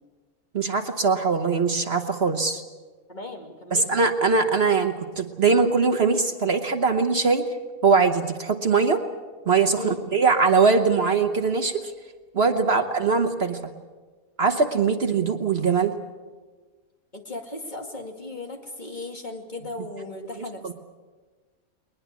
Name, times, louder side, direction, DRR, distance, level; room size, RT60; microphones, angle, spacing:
voice 1, 0.5-2.6 3.7-7.4 7.8-9.0 9.5-11.8 12.3-13.7 14.4-15.9 20.6-20.7, right 4 dB, 50° right, 7 dB, 1.3 m, -21 dB
voice 2, 3.1-4.0 9.7-10.0 12.6-12.9 17.1-20.7, left 2 dB, 35° left, 3 dB, 2.4 m, -37 dB
21.5 x 20.5 x 8.3 m, 1.4 s
omnidirectional pair, 1.5 m